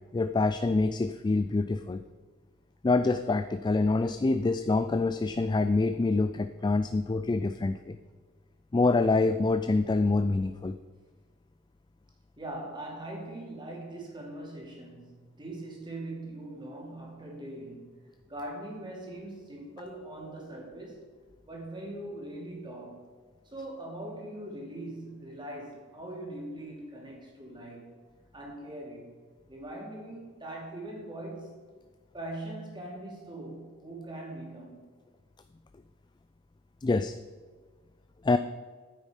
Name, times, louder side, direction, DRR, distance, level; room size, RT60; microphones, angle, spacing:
voice 1, 0.1-2.0 2.8-8.0 8.7-10.8 36.8-37.2 38.2-38.4, left 3 dB, 20° left, 10 dB, 0.3 m, -26 dB
voice 2, 12.4-18.0 18.3-21.1 21.4-23.1 23.4-28.0 28.3-29.1 29.5-31.7 32.1-34.9, right 1 dB, 25° right, -1 dB, 2.6 m, -41 dB
9.4 x 8.3 x 5.1 m, 1.5 s
head